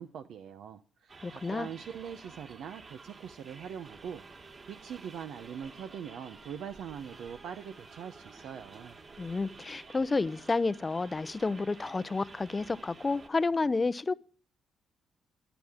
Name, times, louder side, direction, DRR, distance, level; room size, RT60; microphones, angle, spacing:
voice 1, 0.0-4.2 4.7-9.0, right 8 dB, 75° right, 0.7 m, -42 dB
sound 1, 1.1-13.3, right 3 dB, 45° right, 2.7 m, -51 dB
voice 2, 1.2-1.7 9.2-14.1, left 3 dB, 25° left, 0.6 m, -30 dB
17.0 x 11.0 x 3.6 m
cardioid pair, 95°, 0 cm